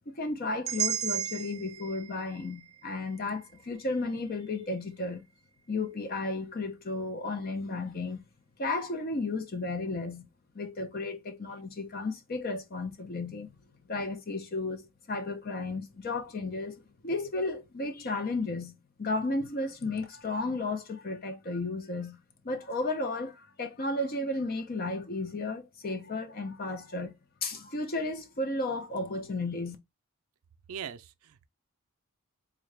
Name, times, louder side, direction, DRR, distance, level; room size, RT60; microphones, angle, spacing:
voice 1, 0.1-5.2 5.7-8.2 8.6-10.2 10.5-13.5 13.9-22.2 22.4-27.1 27.4-29.8, left 2 dB, 40° left, 0.6 m, -33 dB
sound 1, 0.7-4.7, right 9 dB, 30° right, 0.5 m, -36 dB
voice 2, 30.7-31.5, right 8 dB, 80° right, 0.4 m, -41 dB
3.7 x 2.2 x 3.2 m
head